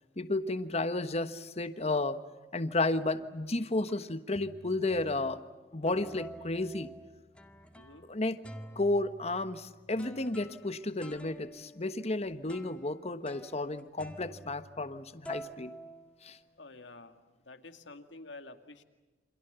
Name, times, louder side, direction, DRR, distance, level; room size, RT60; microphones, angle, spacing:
voice 1, 0.2-2.2 2.5-5.4 5.7-6.9 8.0-8.4 8.7-15.7 16.2-16.4, left 2 dB, 35° left, 11 dB, 1.3 m, -32 dB
sound 1, 2.9-3.3 3.9-4.0 4.4-5.4 5.9-8.1 8.4-15.0 15.3-16.7, equal, 5° left, 2.0 m, -49 dB
voice 2, 7.7-8.1 16.6-18.8, left 2 dB, 90° left, 7 dB, 2.3 m, -50 dB
29.0 x 26.5 x 7.0 m, 1.2 s
head